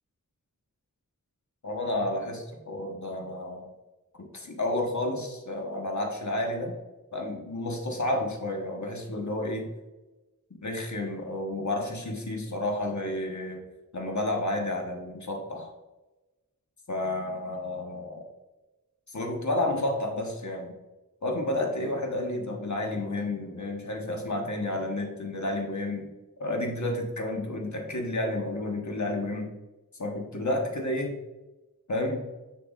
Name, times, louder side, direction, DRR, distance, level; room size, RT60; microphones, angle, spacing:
voice 1, 1.6-3.7 4.1-6.8 7.1-9.7 10.6-13.6 13.9-15.7 16.9-18.3 19.1-20.7 21.2-26.1 26.4-29.5 30.0-31.1 31.9-32.3, left 1 dB, 55° left, 1 dB, 1.2 m, -31 dB
7.1 x 5.9 x 2.4 m, 1.1 s
wide cardioid pair, 45°, 34 cm